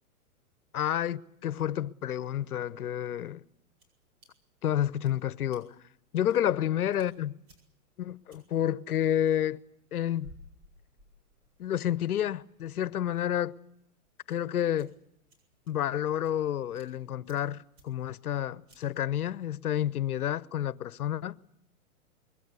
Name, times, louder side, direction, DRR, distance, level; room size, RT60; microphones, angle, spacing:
voice 1, 0.7-3.4 4.6-5.7 6.1-7.4 8.0-9.6 9.9-10.3 11.6-13.5 14.3-14.9 15.7-21.4, left 11 dB, 80° left, 1.0 m, -30 dB
sound 1, 3.0-19.1, equal, 30° right, 7.7 m, -62 dB
24.5 x 22.0 x 8.3 m
hypercardioid pair, 145°, 44 cm